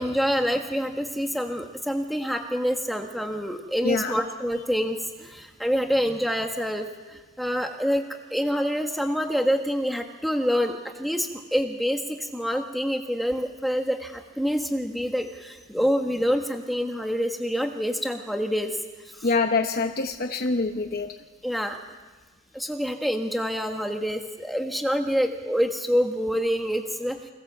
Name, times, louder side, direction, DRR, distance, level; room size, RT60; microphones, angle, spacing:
voice 1, 0.0-8.0 8.3-18.8 19.2-19.3 21.4-21.8 22.5-27.2, equal, ahead, 4 dB, 1.4 m, -26 dB
voice 2, 3.8-4.2 19.2-21.1, left 3 dB, 45° left, 5 dB, 0.9 m, -25 dB
25.5 x 18.5 x 7.4 m, 1.3 s
head